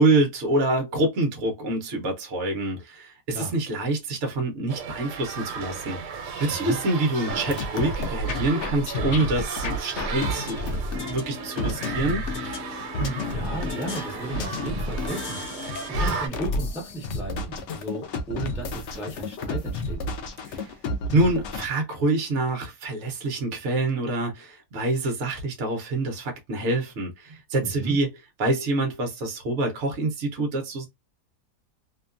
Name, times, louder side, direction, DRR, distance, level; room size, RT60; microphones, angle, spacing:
voice 1, 0.0-10.6 11.1-12.2 20.5-20.7 21.1-28.1 28.4-30.9, right 2 dB, 55° right, 0.9 m, -26 dB
sound 1, 4.7-16.3, right 6 dB, 80° right, 1.2 m, -35 dB
sound 2, 7.3-21.6, left 2 dB, 85° left, 0.6 m, -31 dB
voice 2, 13.0-15.6 15.9-20.0 27.6-28.0, right 2 dB, ahead, 0.8 m, -34 dB
2.9 x 2.2 x 2.4 m
omnidirectional pair, 1.8 m